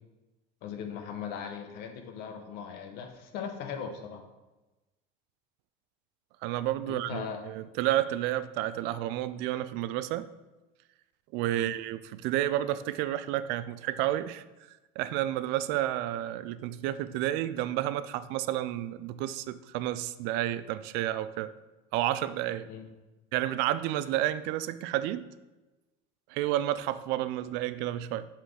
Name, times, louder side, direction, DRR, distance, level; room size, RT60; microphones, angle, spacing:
voice 1, 0.6-4.2 6.9-7.4 11.5-11.7 22.7-22.9, left 7 dB, 60° left, 5 dB, 1.0 m, -39 dB
voice 2, 6.4-10.3 11.3-14.4 15.0-21.5 21.9-22.7 23.3-25.4 26.3-28.3, right 13 dB, 65° right, 14 dB, 0.4 m, -31 dB
5.9 x 5.8 x 4.8 m, 1.1 s
cardioid pair, 160°, 19 cm